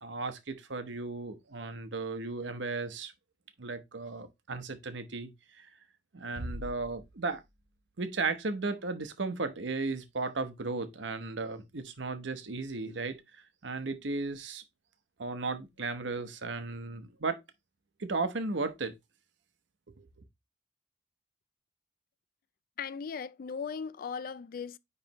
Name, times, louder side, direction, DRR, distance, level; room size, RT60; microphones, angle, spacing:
voice 1, 0.0-3.1 3.6-5.7 6.1-7.4 8.0-13.2 13.6-14.6 15.2-17.4 18.0-18.9 20.0-20.1, right 3 dB, 85° right, 1.0 m, -35 dB
Bass drum, 6.4-7.8, equal, 60° right, 0.9 m, -42 dB
voice 2, 22.8-24.8, left 6 dB, 50° left, 0.4 m, -38 dB
9.6 x 3.3 x 3.0 m
head